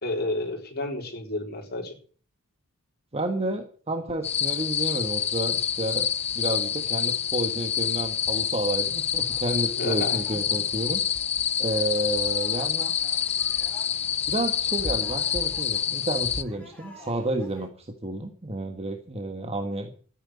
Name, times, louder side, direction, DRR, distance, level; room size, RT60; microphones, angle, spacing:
voice 1, 0.0-1.9 9.8-10.2, left 2 dB, 50° left, 2 dB, 4.2 m, -31 dB
voice 2, 3.1-6.1 6.3-11.0 11.6-12.9 14.3-19.9, right 1 dB, 30° right, 5 dB, 1.5 m, -30 dB
sound 1, 4.2-16.4, left 8 dB, 30° left, 0.7 m, -27 dB
sound 2, 9.2-17.7, left 1 dB, 5° left, 4.9 m, -50 dB
13.5 x 9.2 x 8.2 m, 0.42 s
head